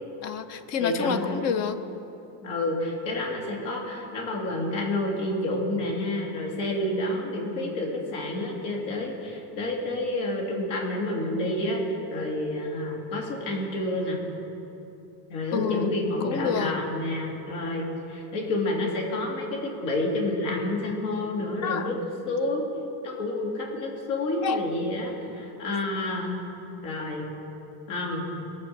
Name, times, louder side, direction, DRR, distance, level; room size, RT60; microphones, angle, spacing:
voice 1, 0.2-1.8 15.5-15.9 16.2-16.7 21.6-21.9 24.4-24.7, left 7 dB, 40° left, 11 dB, 0.5 m, -29 dB
voice 2, 0.8-1.2 2.4-11.8 12.1-14.2 15.3-22.0 22.3-22.6 23.0-26.3 26.8-27.3 27.9-28.3, left 1 dB, 70° left, -1 dB, 3.0 m, -29 dB
21.5 x 7.1 x 5.9 m, 2.9 s
cardioid pair, 180°, 44 cm